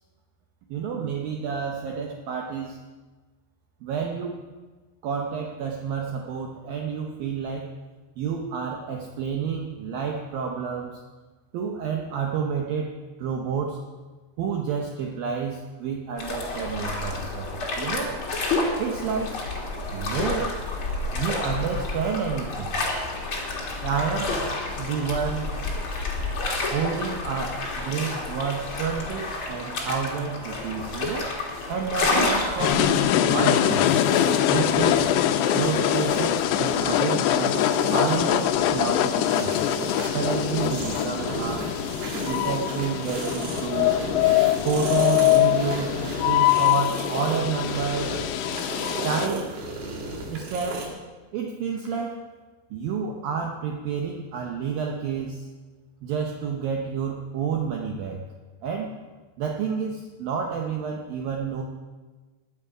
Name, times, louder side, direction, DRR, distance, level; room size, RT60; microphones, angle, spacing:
voice 1, 0.7-2.8 3.8-4.4 5.0-7.7 8.2-11.0 11.5-13.8 14.4-17.5 17.8-18.2 18.8-19.4 19.9-20.6 21.1-22.8 23.8-24.4 24.8-25.5 26.7-31.3 31.7-33.9 34.5-35.1 35.5-37.6 37.9-39.6 40.1-41.7 42.2-44.0 44.6-48.2 49.0-49.5 50.3-50.9 51.3-52.2 52.7-55.5 56.0-58.2 58.6-58.9 59.4-61.6, right 6 dB, 80° right, 1 dB, 2.0 m, -29 dB
sound 1, 16.2-33.2, left 3 dB, 45° left, 1.8 m, -29 dB
sound 2, 32.6-49.3, left 12 dB, 85° left, 2.3 m, -23 dB
sound 3, 33.2-50.9, right 1 dB, 60° right, 3.6 m, -34 dB
20.5 x 8.2 x 4.9 m, 1.3 s
omnidirectional pair, 5.5 m